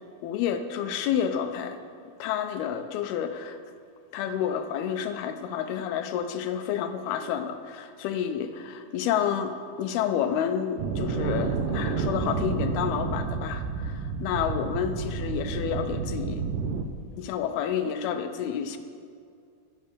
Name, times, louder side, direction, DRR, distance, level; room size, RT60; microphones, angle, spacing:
voice 1, 0.2-1.8 2.2-3.6 4.1-16.4 17.1-18.8, left 8 dB, 80° left, 8 dB, 2.6 m, -29 dB
sound 1, 10.8-16.8, right 5 dB, 80° right, 1.9 m, -30 dB
11.5 x 10.0 x 6.8 m, 2.3 s
omnidirectional pair, 4.7 m